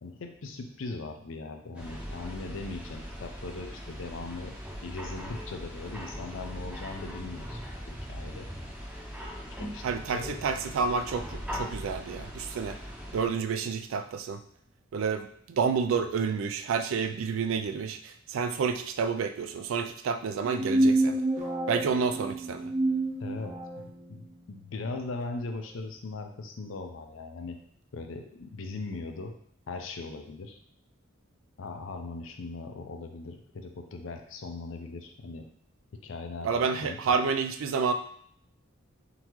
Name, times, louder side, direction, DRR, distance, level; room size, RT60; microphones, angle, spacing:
voice 1, 0.0-4.5 4.8-7.6 8.1-8.5 9.6-10.3 23.2-27.6 27.9-29.3 29.7-30.6 31.6-35.5 36.0-37.0, left 3 dB, 65° left, 5 dB, 0.5 m, -39 dB
sound 1, 1.7-13.3, equal, 5° right, 0.7 m, -40 dB
voice 2, 9.8-12.8 13.1-14.4 14.9-21.2 21.7-22.7 36.4-37.9, right 5 dB, 75° right, 8 dB, 0.3 m, -29 dB
sound 2, 20.4-23.9, right 2 dB, 35° right, 0.9 m, -27 dB
3.8 x 2.7 x 3.0 m, 0.64 s
head